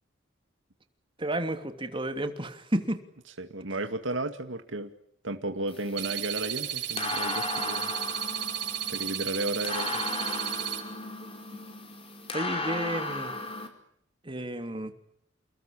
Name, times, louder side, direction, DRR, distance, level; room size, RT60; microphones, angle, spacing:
voice 1, 1.2-3.0 11.5-11.6 12.3-13.3 14.2-14.9, right 1 dB, 25° right, 7 dB, 3.1 m, -31 dB
voice 2, 3.4-4.9 5.2-7.9 8.9-10.0, right 2 dB, 85° right, 6 dB, 2.3 m, -33 dB
sound 1, 5.7-13.7, left 3 dB, 30° left, 5.1 m, -36 dB
sound 2, 6.0-10.8, right 10 dB, 60° right, 6.3 m, -33 dB
30.0 x 20.0 x 8.8 m, 0.69 s
head